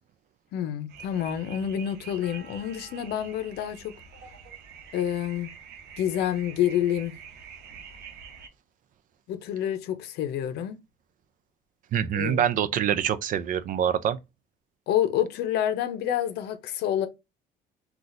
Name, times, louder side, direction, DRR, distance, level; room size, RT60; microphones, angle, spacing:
voice 1, 0.5-3.9 4.9-5.5 6.0-7.2 9.3-10.8 12.1-12.5 14.9-17.1, left 10 dB, 75° left, 0.6 m, -28 dB
sound 1, 0.9-8.5, right 6 dB, 80° right, 0.8 m, -46 dB
voice 2, 11.9-14.2, right 9 dB, 50° right, 0.4 m, -25 dB
3.9 x 2.3 x 2.5 m
cardioid pair, 110°, 17 cm